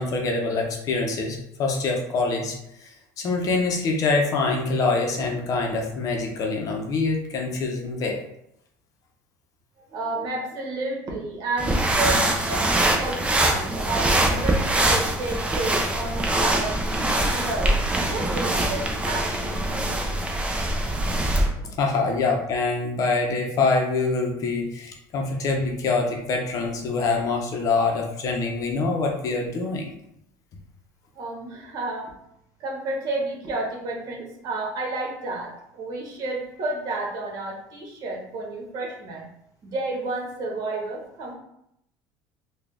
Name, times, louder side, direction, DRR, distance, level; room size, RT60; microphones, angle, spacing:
voice 1, 0.0-2.6 2.8-2.9 3.2-8.2 21.8-29.9, left 3 dB, 45° left, 1 dB, 0.7 m, -25 dB
voice 2, 9.9-17.8 18.1-20.1 31.1-32.1 32.6-39.2 39.6-41.3, right 2 dB, 50° right, -1 dB, 1.2 m, -31 dB
sound 1, 11.6-21.5, right 1 dB, 15° right, 0.6 m, -23 dB
3.7 x 2.3 x 3.4 m, 0.78 s
cardioid pair, 120°, 8 cm